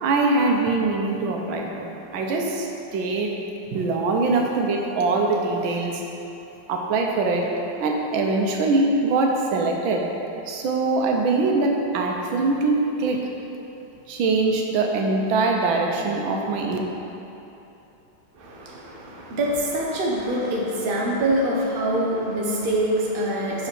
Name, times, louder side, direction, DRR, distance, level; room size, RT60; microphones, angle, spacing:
voice 1, 0.0-3.4 3.7-6.0 6.7-7.5 7.8-10.0 10.5-13.2 14.1-16.8, right 3 dB, 85° right, 1 dB, 1.5 m, -23 dB
voice 2, 18.3-23.7, right 1 dB, 40° right, -4 dB, 0.9 m, -25 dB
5.3 x 5.0 x 6.0 m, 2.9 s
omnidirectional pair, 2.1 m